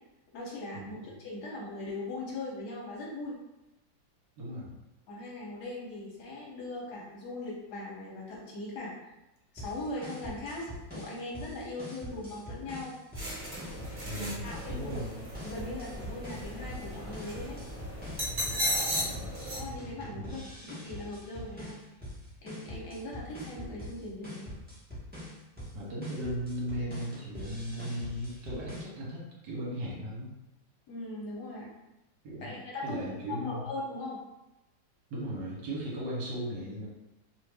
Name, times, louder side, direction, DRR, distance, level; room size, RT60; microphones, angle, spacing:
voice 1, 0.3-3.4 5.1-8.9 9.6-13.0 14.2-14.9 15.4-17.6 19.5-21.9 22.4-24.5 30.9-31.7 32.4-34.2, left 2 dB, 65° left, -3 dB, 1.2 m, -40 dB
voice 2, 4.4-4.7 14.1-15.1 19.0-19.3 20.3-20.4 25.7-30.3 32.2-32.5 32.8-33.6 35.1-36.9, equal, 70° right, -4 dB, 1.5 m, -37 dB
sound 1, 9.6-28.8, equal, 10° right, 0.7 m, -44 dB
sound 2, 13.2-19.6, equal, 35° right, 1.3 m, -36 dB
3.0 x 2.5 x 3.3 m, 0.96 s
omnidirectional pair, 2.0 m